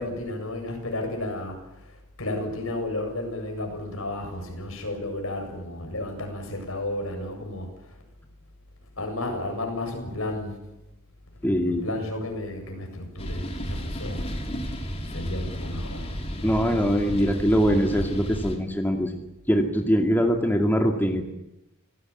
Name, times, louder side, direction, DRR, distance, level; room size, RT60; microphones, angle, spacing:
voice 1, 0.0-8.0 9.0-10.6 11.7-14.3 15.1-16.8, left 1 dB, 70° left, 4 dB, 7.5 m, -33 dB
voice 2, 11.4-11.8 16.4-19.2 19.5-21.3, equal, 10° left, 3 dB, 2.2 m, -22 dB
sound 1, 13.2-18.6, equal, 30° left, 3.8 m, -32 dB
26.5 x 17.5 x 8.6 m, 0.92 s
head